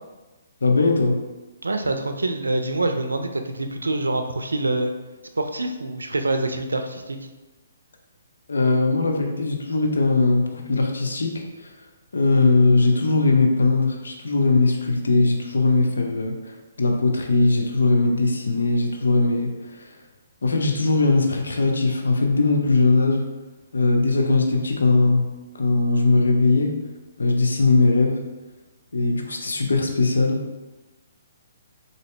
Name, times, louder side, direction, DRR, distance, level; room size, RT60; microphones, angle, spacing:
voice 1, 0.6-1.2 8.5-11.7 12.1-19.8 20.4-23.3 23.7-25.2 25.5-26.8 27.2-28.2 28.9-30.6, left 3 dB, 80° left, 2 dB, 0.7 m, -20 dB
voice 2, 1.6-4.9 5.4-7.2, right 2 dB, 90° right, 6 dB, 0.4 m, -25 dB
3.7 x 2.8 x 3.3 m, 1.1 s
hypercardioid pair, 140°, 0 cm